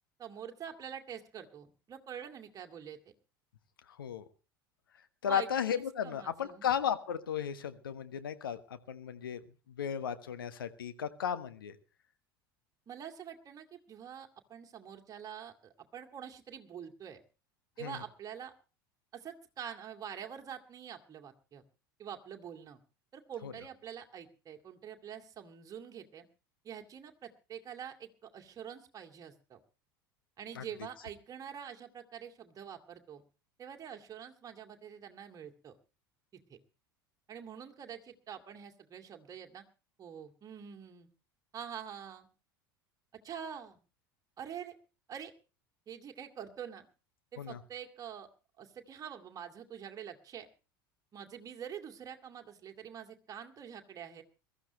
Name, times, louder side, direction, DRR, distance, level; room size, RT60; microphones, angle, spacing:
voice 1, 0.2-3.0 5.3-5.5 5.7-6.7 12.9-17.2 17.8-18.5 19.1-21.6 22.0-22.8 23.1-26.3 26.6-29.6 30.4-33.2 33.6-35.7 36.3-36.6 37.3-39.6 40.0-41.1 41.5-42.3 43.2-43.8 44.4-44.7 45.1-45.3 45.9-46.9 47.3-48.3 48.6-50.5 51.1-54.2, right 8 dB, 30° right, 4 dB, 2.3 m, -46 dB
voice 2, 5.2-9.4 9.7-11.7 17.8-18.0 23.4-23.5 30.5-30.6 47.4-47.6, left 8 dB, 75° left, 10 dB, 1.3 m, -35 dB
22.0 x 14.0 x 3.2 m, 0.33 s
figure-of-eight pair, 75°, 12 cm